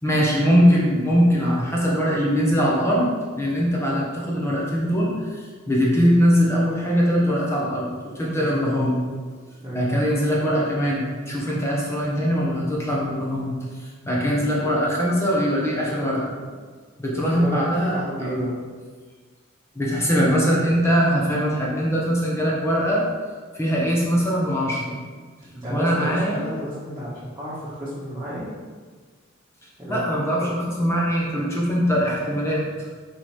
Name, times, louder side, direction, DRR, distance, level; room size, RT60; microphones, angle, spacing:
voice 1, 0.0-3.1 3.4-9.0 9.7-16.3 17.0-18.4 19.7-23.0 23.5-25.0 25.7-26.4 29.9-32.9, equal, 15° left, -4 dB, 1.2 m, -22 dB
voice 2, 17.3-18.6 25.5-28.5 29.8-30.6, equal, 20° right, -11 dB, 1.5 m, -32 dB
5.5 x 4.9 x 4.4 m, 1.5 s
head